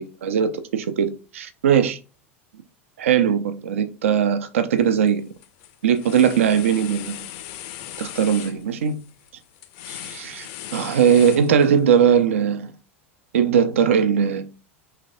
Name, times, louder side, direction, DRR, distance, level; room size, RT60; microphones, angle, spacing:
voice 1, 0.0-2.0 3.0-5.2 5.8-7.2 8.0-9.0 9.9-12.7 13.3-14.4, right 8 dB, 70° right, 0.4 m, -20 dB
sound 1, 4.8-5.1 5.4-11.9, left 12 dB, 50° left, 0.4 m, -38 dB
3.9 x 3.2 x 2.5 m
figure-of-eight pair, 85°, 7 cm